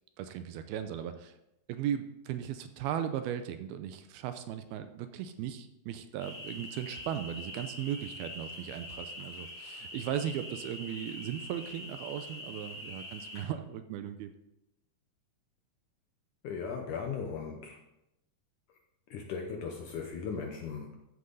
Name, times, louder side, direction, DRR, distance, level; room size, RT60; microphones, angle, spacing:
voice 1, 0.2-1.4 1.7-14.3, right 10 dB, 80° right, 9 dB, 2.4 m, -37 dB
sound 1, 6.2-13.4, left 1 dB, 50° left, 4.5 m, -44 dB
voice 2, 16.4-17.8 19.1-21.1, left 5 dB, 70° left, 2 dB, 1.9 m, -38 dB
13.5 x 8.1 x 4.0 m, 0.87 s
omnidirectional pair, 4.6 m